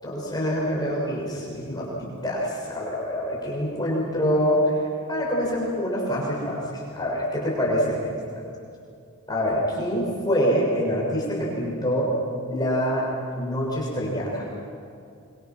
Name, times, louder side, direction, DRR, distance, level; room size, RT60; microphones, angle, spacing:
voice 1, 0.0-8.1 9.3-12.1 12.5-13.0 13.4-14.4, equal, 20° left, -5 dB, 6.6 m, -25 dB
26.5 x 24.5 x 6.2 m, 2.5 s
head